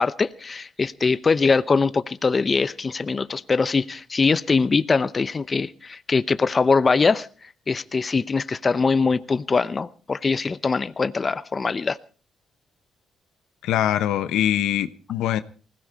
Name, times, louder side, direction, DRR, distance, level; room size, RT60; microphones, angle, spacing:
voice 1, 0.0-7.3 7.7-12.0, left 4 dB, 30° left, 14 dB, 0.7 m, -22 dB
voice 2, 13.6-15.4, left 11 dB, 85° left, 13 dB, 1.0 m, -23 dB
20.0 x 16.5 x 4.1 m, 0.37 s
cardioid pair, 90°, 0 cm